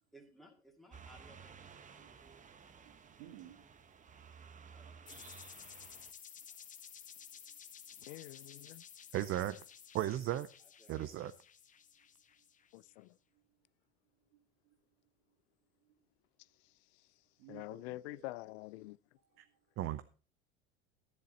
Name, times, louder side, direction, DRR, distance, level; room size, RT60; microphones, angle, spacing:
voice 1, 0.1-2.5 4.7-5.0 10.6-11.2, right 1 dB, ahead, 2.3 m, -62 dB
sound 1, 0.9-6.1, right 6 dB, 25° right, 1.0 m, -55 dB
voice 2, 2.0-3.9 4.8-4.9 6.5-6.6 7.2-7.6 12.4-12.5 12.8-12.9 13.3-13.4 14.3-14.8 15.8-16.0 17.4-18.2 19.3-19.6, right 12 dB, 70° right, 2.3 m, -59 dB
sound 2, 5.1-12.8, left 8 dB, 25° left, 0.8 m, -54 dB
voice 3, 8.0-8.8 12.7-13.1 17.5-19.0, left 19 dB, 75° left, 0.5 m, -46 dB
voice 4, 9.1-9.6 9.9-10.5 10.9-11.3 19.4-19.5 19.8-20.0, right 13 dB, 40° right, 0.6 m, -35 dB
11.0 x 10.5 x 4.1 m
supercardioid pair, 105°, 32 cm